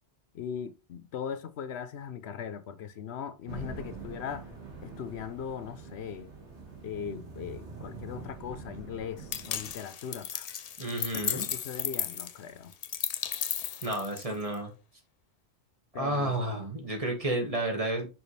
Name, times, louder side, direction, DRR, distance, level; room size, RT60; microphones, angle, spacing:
voice 1, 0.3-4.5 4.8-6.3 6.8-10.5 11.1-12.7 15.9-16.4, left 7 dB, 75° left, 0.9 m, -39 dB
sound 1, 3.5-9.7, right 4 dB, 90° right, 1.9 m, -44 dB
sound 2, 9.3-14.5, left 8 dB, 50° left, 0.4 m, -34 dB
voice 2, 10.8-11.5 13.8-14.7 15.9-18.1, right 1 dB, 30° right, 1.8 m, -31 dB
6.0 x 5.1 x 3.2 m
omnidirectional pair, 1.1 m